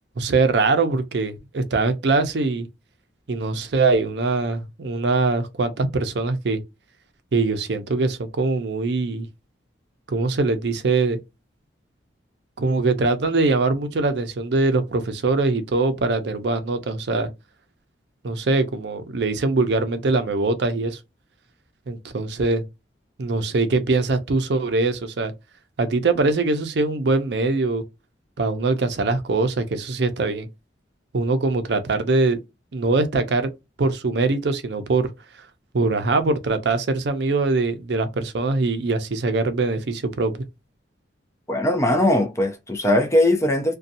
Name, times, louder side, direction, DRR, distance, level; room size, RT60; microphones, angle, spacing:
voice 1, 0.2-2.7 3.3-6.6 7.3-9.3 10.1-11.2 12.6-17.3 18.2-21.0 21.9-22.6 23.2-25.3 25.8-27.8 28.4-30.5 31.1-32.4 32.7-33.5 33.8-35.1 35.7-40.5, right 3 dB, 65° right, 0.5 m, -22 dB
voice 2, 41.5-43.8, left 1 dB, 15° left, 0.4 m, -20 dB
2.7 x 2.2 x 2.5 m
head